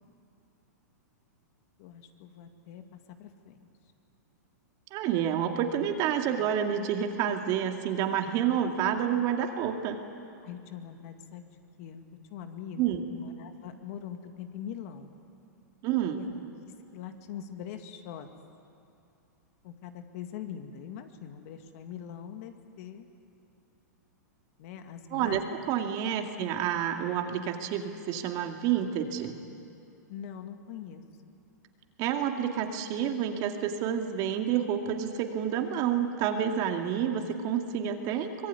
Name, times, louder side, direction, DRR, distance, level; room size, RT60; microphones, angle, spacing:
voice 1, 1.8-2.8 3.2-3.7 10.4-12.0 12.3-15.1 16.1-16.4 16.9-18.3 19.6-23.1 24.6-25.4 30.1-31.0, left 9 dB, 50° left, 6 dB, 2.3 m, -42 dB
voice 2, 4.9-10.0 12.8-13.0 15.8-16.2 25.1-29.4 32.0-38.5, right 9 dB, 40° right, 4 dB, 2.2 m, -29 dB
24.5 x 20.5 x 9.5 m, 2.6 s
hypercardioid pair, 130°, 10 cm